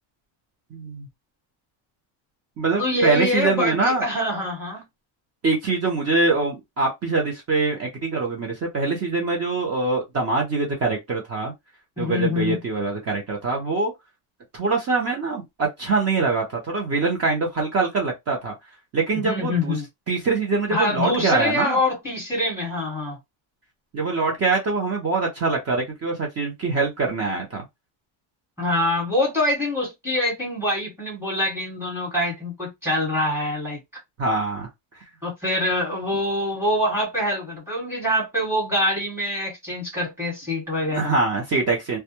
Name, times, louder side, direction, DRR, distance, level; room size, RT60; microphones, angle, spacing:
voice 1, 0.7-1.1 2.6-4.0 5.4-11.5 12.0-13.9 14.5-18.5 18.9-19.8 20.1-21.8 23.9-27.6 34.2-34.7 40.9-42.0, right 3 dB, 30° right, 0.6 m, -24 dB
voice 2, 2.8-4.8 12.0-12.6 19.2-19.8 20.7-23.2 28.6-33.8 35.2-41.1, left 1 dB, 5° right, 1.2 m, -25 dB
2.2 x 2.2 x 2.8 m
cardioid pair, 175°, 50 cm